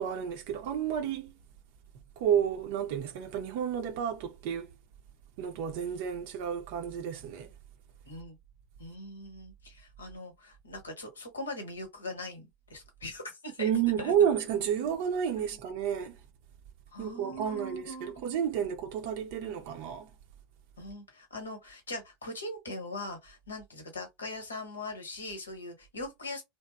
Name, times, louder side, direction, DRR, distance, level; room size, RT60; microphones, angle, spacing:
voice 1, 0.0-1.3 2.2-4.7 5.4-7.5 13.6-16.1 17.0-20.1, right 8 dB, 60° right, 0.5 m, -31 dB
voice 2, 8.1-8.4 8.8-13.7 14.0-14.1 16.9-18.2 20.8-26.4, left 1 dB, 80° left, 0.9 m, -41 dB
2.8 x 2.0 x 2.2 m
figure-of-eight pair, 80°, 0 cm